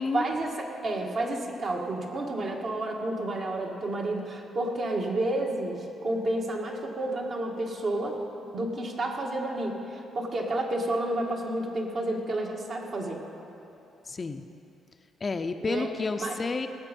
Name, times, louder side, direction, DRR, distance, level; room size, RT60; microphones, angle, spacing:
voice 1, 0.0-8.2 8.5-13.2 15.7-15.9 16.2-16.4, right 1 dB, 55° right, 0 dB, 1.9 m, -30 dB
voice 2, 14.1-14.4 15.2-16.7, left 4 dB, 35° left, 7 dB, 0.6 m, -30 dB
18.5 x 7.4 x 5.3 m, 2.9 s
cardioid pair, 90°, 0 cm